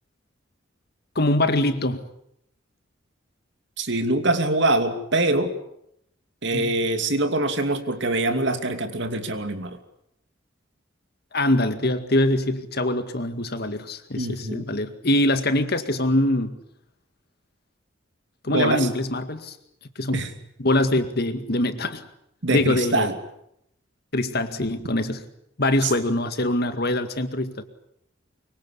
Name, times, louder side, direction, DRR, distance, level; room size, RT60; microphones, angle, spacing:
voice 1, 1.2-2.0 6.5-6.8 11.3-16.6 18.4-19.6 20.0-20.2 20.6-22.1 22.5-23.1 24.1-25.2 25.6-27.6, left 1 dB, 55° left, 9 dB, 2.1 m, -23 dB
voice 2, 3.8-5.5 6.4-9.8 14.2-14.7 18.5-18.9 20.1-20.3 22.4-23.1 25.8-25.9, right 2 dB, 60° right, 7 dB, 2.7 m, -24 dB
24.5 x 23.5 x 8.5 m, 0.76 s
head